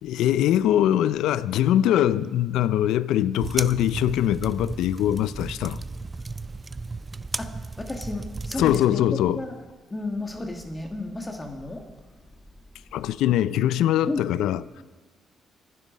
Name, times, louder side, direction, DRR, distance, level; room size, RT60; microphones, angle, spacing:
voice 1, 0.0-5.8 8.6-9.4 12.9-14.8, left 12 dB, 85° left, 0.4 m, -22 dB
sound 1, 3.4-8.8, right 3 dB, 25° right, 0.5 m, -34 dB
voice 2, 7.4-9.5 9.9-11.9 14.1-14.2, left 2 dB, 20° left, 1.7 m, -33 dB
25.0 x 9.4 x 5.2 m
cardioid pair, 90°, 0 cm